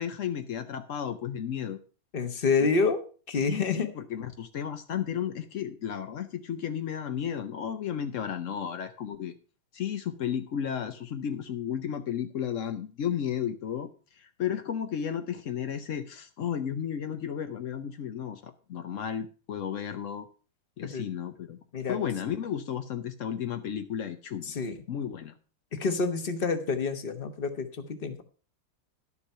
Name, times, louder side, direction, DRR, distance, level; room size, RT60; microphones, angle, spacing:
voice 1, 0.0-1.8 3.5-9.3 9.7-13.9 14.2-20.3 20.8-21.6 21.9-24.5 24.9-25.3, left 9 dB, 80° left, 8 dB, 0.6 m, -33 dB
voice 2, 2.1-3.9 20.8-21.1 21.7-22.0 24.4-24.8 25.7-28.2, left 4 dB, 35° left, 9 dB, 1.0 m, -28 dB
11.5 x 7.0 x 5.5 m, 0.37 s
omnidirectional pair, 2.3 m